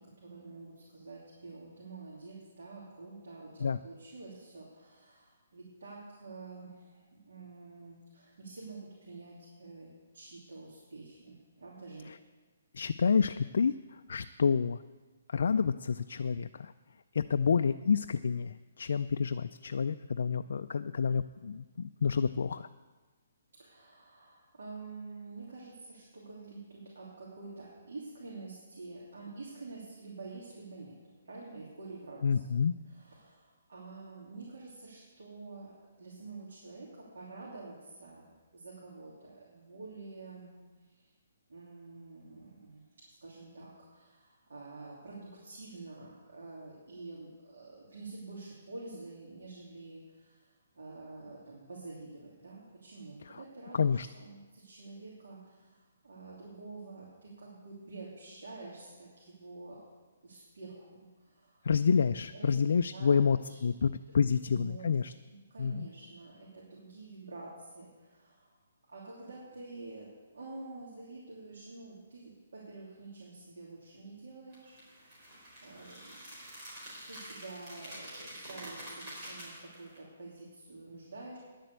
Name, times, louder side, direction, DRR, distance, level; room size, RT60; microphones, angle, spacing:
voice 1, 0.0-12.2 23.5-31.0 31.2-32.6 32.9-38.3 38.5-40.6 40.8-41.1 41.5-59.8 60.2-61.7 62.3-63.6 64.1-64.9 65.2-68.6 68.9-76.2 77.1-81.4, right 3 dB, 85° right, -4 dB, 3.0 m, -48 dB
voice 2, 12.7-14.8 15.3-16.7 17.1-22.7 32.2-32.7 53.3-53.4 53.7-54.1 61.6-65.1 65.6-65.9, left 6 dB, 65° left, 10 dB, 0.3 m, -29 dB
sound 1, 74.5-80.0, right 1 dB, 25° right, 4.3 m, -47 dB
10.5 x 7.6 x 8.3 m, 1.3 s
hypercardioid pair, 170°, 0 cm